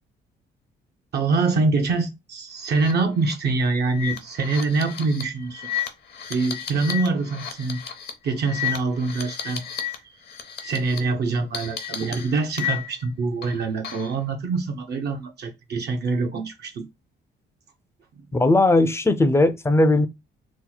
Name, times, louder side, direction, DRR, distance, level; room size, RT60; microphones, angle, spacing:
voice 1, 1.1-5.7 6.3-7.8 8.2-9.6 10.6-16.8, right 3 dB, 55° right, 0.6 m, -25 dB
sound 1, 2.7-2.9 3.2-3.3 3.9-10.0 10.2-11.0 11.5-13.1 13.4-14.2, left 9 dB, 55° left, 0.8 m, -33 dB
voice 2, 18.3-20.1, left 2 dB, 15° left, 0.4 m, -18 dB
2.9 x 2.1 x 3.9 m
cardioid pair, 90°, 20 cm